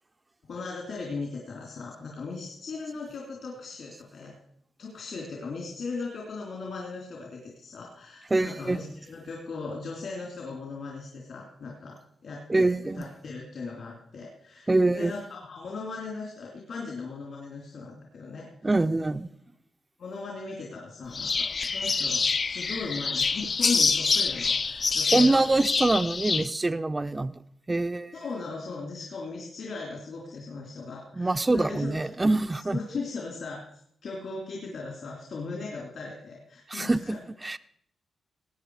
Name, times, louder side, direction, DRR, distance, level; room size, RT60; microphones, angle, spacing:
voice 1, 0.5-4.3 4.8-12.0 12.2-18.7 20.0-25.6 28.1-32.0 32.5-33.6 34.0-37.2, left 4 dB, 65° left, -2 dB, 3.2 m, -38 dB
voice 2, 8.3-8.8 12.5-13.0 14.7-15.1 18.6-19.3 25.1-27.4 27.7-28.1 31.2-32.8 36.7-37.6, right 2 dB, 20° right, 10 dB, 0.4 m, -24 dB
sound 1, 21.1-26.5, left 4 dB, 40° left, 0.4 m, -26 dB
18.5 x 8.6 x 4.8 m, 0.71 s
cardioid pair, 100°, 0 cm